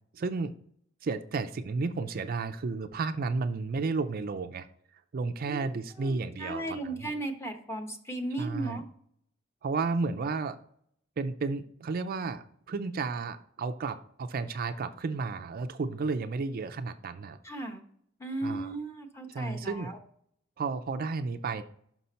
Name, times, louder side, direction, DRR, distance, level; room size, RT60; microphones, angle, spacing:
voice 1, 0.1-0.5 1.0-4.7 5.1-7.1 8.4-8.8 9.6-10.6 11.2-17.4 18.4-18.7 19.3-19.9 20.6-21.6, right 4 dB, 45° right, 9 dB, 0.4 m, -32 dB
voice 2, 5.4-8.8 17.4-17.8 18.2-20.0, right 2 dB, 15° left, 4 dB, 0.9 m, -36 dB
5.9 x 5.6 x 4.1 m, 0.65 s
head